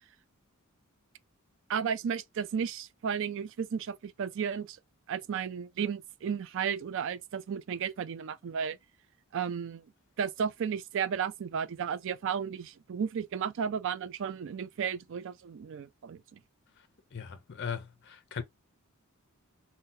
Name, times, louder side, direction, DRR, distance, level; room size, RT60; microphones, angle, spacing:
voice 1, 1.7-4.8 5.1-8.8 9.3-9.8 10.2-16.4, right 7 dB, 60° right, 0.4 m, -33 dB
voice 2, 17.1-18.4, left 6 dB, 50° left, 0.4 m, -38 dB
2.6 x 2.1 x 3.7 m
head